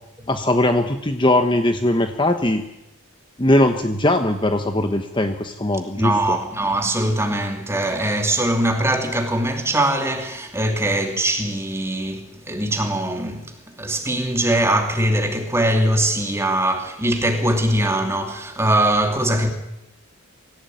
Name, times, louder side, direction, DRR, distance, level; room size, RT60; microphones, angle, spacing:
voice 1, 0.3-2.6 3.4-6.4, left 1 dB, 20° left, 1.1 m, -20 dB
voice 2, 5.9-13.5 13.8-19.5, right 1 dB, 10° right, 2.8 m, -21 dB
25.0 x 16.0 x 9.3 m
head